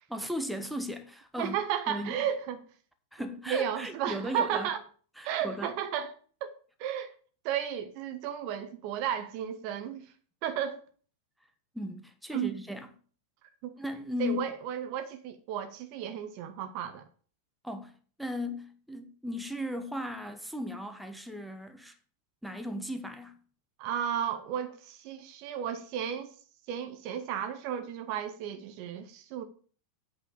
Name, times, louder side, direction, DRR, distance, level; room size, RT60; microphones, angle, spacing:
voice 1, 0.1-1.6 1.9-2.2 3.1-4.7 5.2-5.8 11.7-12.9 13.8-14.4 17.6-22.0 22.4-23.4, left 1 dB, ahead, 1.1 m, -36 dB
voice 2, 1.4-2.6 3.5-4.8 5.2-6.1 6.4-6.5 6.8-7.1 7.4-10.1 10.4-10.8 12.3-12.6 13.6-13.8 14.2-17.0 23.8-26.3 26.7-29.4, right 9 dB, 45° right, 1.1 m, -33 dB
8.3 x 4.8 x 7.3 m
figure-of-eight pair, 90°, 0 cm